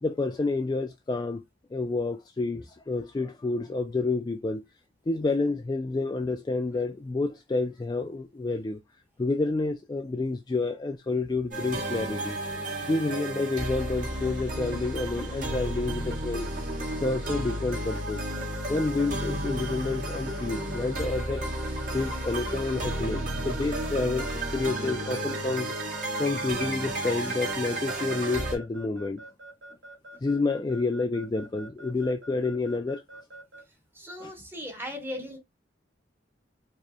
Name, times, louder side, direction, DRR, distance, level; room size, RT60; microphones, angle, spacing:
voice 1, 0.0-1.4 1.7-4.6 5.1-8.8 9.2-12.4 12.9-16.5 16.9-18.2 18.7-21.4 21.9-24.3 24.5-25.7 26.2-29.2 30.2-33.0 34.2-34.3, left 3 dB, 20° left, 0.3 m, -29 dB
sound 1, 11.5-28.6, right 1 dB, 45° right, 1.8 m, -32 dB
Keyboard (musical) / Alarm, 17.0-33.6, right 1 dB, 65° right, 2.2 m, -46 dB
voice 2, 34.0-35.4, left 1 dB, 10° right, 1.2 m, -37 dB
4.7 x 3.1 x 2.2 m
head